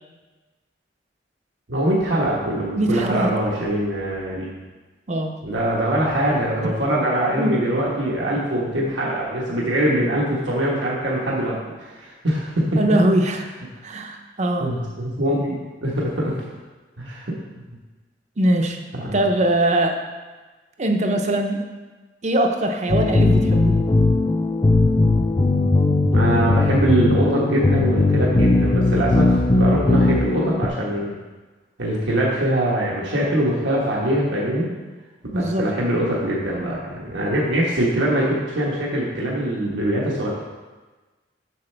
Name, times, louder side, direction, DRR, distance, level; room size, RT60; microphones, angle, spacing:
voice 1, 1.7-4.5 5.4-12.8 14.6-16.4 17.0-17.3 18.9-19.2 26.1-31.1 31.8-34.7 35.3-40.3, right 1 dB, 85° right, -4 dB, 1.2 m, -23 dB
voice 2, 2.7-3.3 5.1-5.3 7.4-7.6 12.8-13.5 13.8-14.7 18.4-18.8 19.1-20.0 20.8-21.6 22.2-23.8 35.3-35.7, right 1 dB, 40° right, 4 dB, 0.6 m, -21 dB
sound 1, 22.9-30.7, left 2 dB, 20° left, 0.4 m, -18 dB
7.8 x 6.6 x 3.3 m, 1.3 s
head